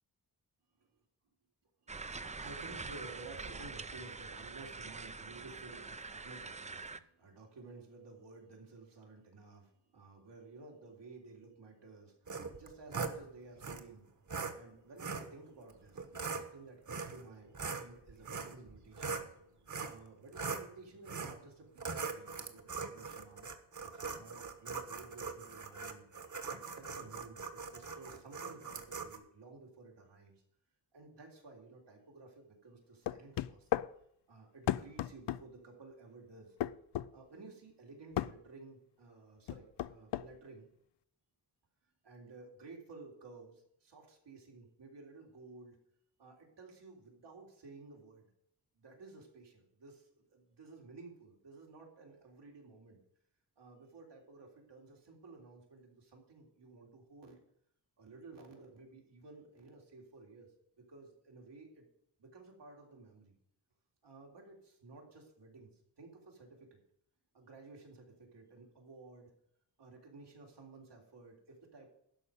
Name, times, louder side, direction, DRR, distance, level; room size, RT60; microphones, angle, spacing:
voice 1, 1.8-14.1 14.5-19.2 19.8-23.5 23.8-26.0 26.5-30.4 30.9-33.7 34.3-36.6 37.1-40.7 42.0-45.8 46.2-48.3 48.7-53.0 53.6-57.4 58.0-61.9 62.2-63.4 64.0-66.8 67.3-69.3 69.8-71.9, right 3 dB, 90° right, 0 dB, 3.7 m, -54 dB
sound 1, 1.9-7.0, right 4 dB, 20° right, 0.5 m, -45 dB
sound 2, 12.3-13.2 13.6-13.8 14.3-14.5 15.0-15.3 16.0-16.4 16.9-17.2 17.5-19.3 19.7-20.0 20.3-20.7 21.1-21.4 21.8-29.2, right 5 dB, 45° right, 1.4 m, -41 dB
sound 3, 33.1-33.9 34.7-35.4 36.6-37.1 38.2-38.3 39.5-40.3, left 13 dB, 85° left, 0.5 m, -34 dB
12.5 x 5.4 x 9.1 m, 0.72 s
wide cardioid pair, 130°, 41 cm